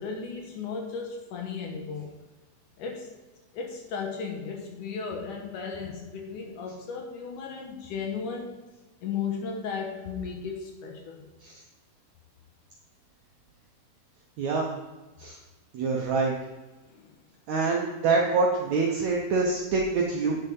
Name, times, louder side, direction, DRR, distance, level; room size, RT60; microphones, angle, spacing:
voice 1, 0.0-2.1 2.8-3.1 3.5-8.6 9.0-11.2 16.9-17.0, left 5 dB, 70° left, 1 dB, 2.2 m, -35 dB
voice 2, 14.4-14.7 15.2-15.4 15.7-16.3 17.5-20.4, right 4 dB, 75° right, -1 dB, 1.7 m, -25 dB
9.4 x 5.6 x 5.4 m, 1.2 s
omnidirectional pair, 4.4 m